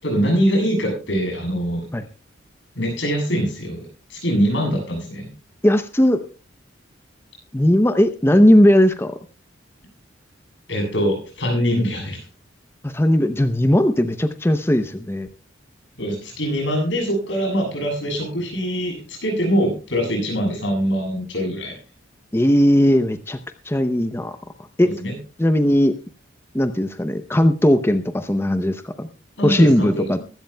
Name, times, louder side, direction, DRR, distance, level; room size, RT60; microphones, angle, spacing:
voice 1, 0.0-1.8 2.8-5.3 10.7-12.2 16.0-21.8 24.8-25.1 29.4-30.1, equal, 70° left, 1 dB, 7.6 m, -23 dB
voice 2, 5.6-6.3 7.5-9.2 12.8-15.3 22.3-23.4 23.6-24.4 24.8-24.9 25.4-25.9 26.5-29.1 29.4-30.2, left 1 dB, 10° left, 9 dB, 0.6 m, -17 dB
22.5 x 13.0 x 2.2 m, 0.36 s
head